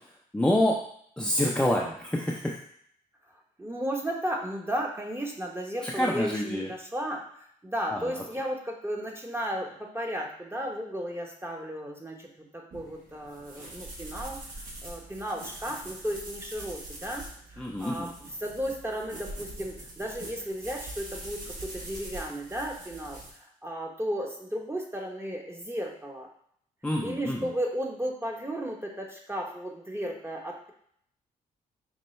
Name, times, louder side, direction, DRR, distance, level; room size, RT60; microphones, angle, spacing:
voice 1, 0.3-0.8 1.2-2.6 5.8-6.7 7.9-8.0 17.6-18.1 26.8-27.5, left 1 dB, 5° left, -2 dB, 0.6 m, -27 dB
voice 2, 3.6-14.5 14.8-26.3 27.0-30.7, equal, 15° right, 1 dB, 0.9 m, -34 dB
sound 1, 12.7-23.3, right 2 dB, 50° right, 1.2 m, -43 dB
5.3 x 2.2 x 3.2 m, 0.67 s
supercardioid pair, 50°, 17 cm